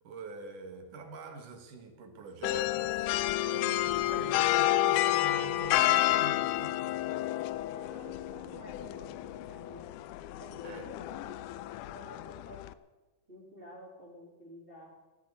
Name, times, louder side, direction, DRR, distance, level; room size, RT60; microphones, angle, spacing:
voice 1, 0.0-6.9 10.6-10.9, right 4 dB, 90° right, 5 dB, 3.3 m, -45 dB
sound 1, 2.4-12.7, left 15 dB, 90° left, 2.1 m, -30 dB
voice 2, 7.7-9.9 10.4-11.3 11.9-12.6 13.3-14.9, left 1 dB, 20° right, -2 dB, 2.9 m, -50 dB
14.5 x 9.3 x 8.6 m, 1.2 s
omnidirectional pair, 3.5 m